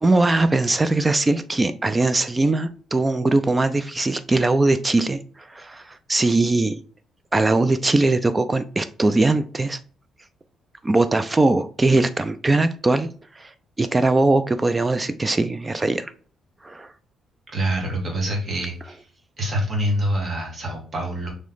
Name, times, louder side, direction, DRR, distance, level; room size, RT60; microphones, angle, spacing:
voice 1, 0.0-6.8 7.3-9.8 10.8-13.1 13.4-13.5 13.8-16.1 16.6-16.9, right 2 dB, 20° right, 12 dB, 0.3 m, -20 dB
voice 2, 17.5-19.0 19.4-21.3, right 1 dB, 45° right, 0 dB, 1.6 m, -25 dB
3.2 x 3.1 x 3.8 m, 0.41 s
cardioid pair, 90°, 0 cm